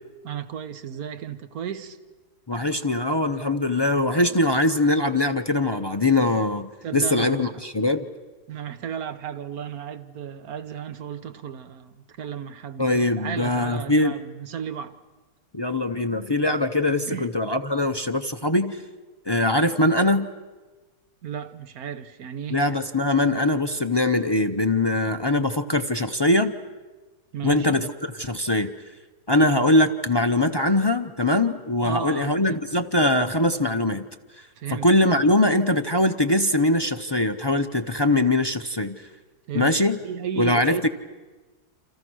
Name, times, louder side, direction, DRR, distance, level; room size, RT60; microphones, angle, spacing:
voice 1, 0.2-2.0 2.5-2.6 6.8-7.5 8.5-15.0 17.1-17.3 21.2-22.6 27.3-27.8 29.4-29.5 31.8-32.6 34.6-34.9 39.5-39.7 40.0-40.9, right 8 dB, 65° right, 1.5 m, -34 dB
voice 2, 2.5-8.1 12.8-14.1 15.5-18.8 19.3-20.3 22.5-26.6 27.4-28.7 29.3-34.0 34.4-39.1 39.5-40.0 40.4-40.9, left 1 dB, 40° left, 0.3 m, -22 dB
29.0 x 27.0 x 6.3 m
omnidirectional pair, 1.7 m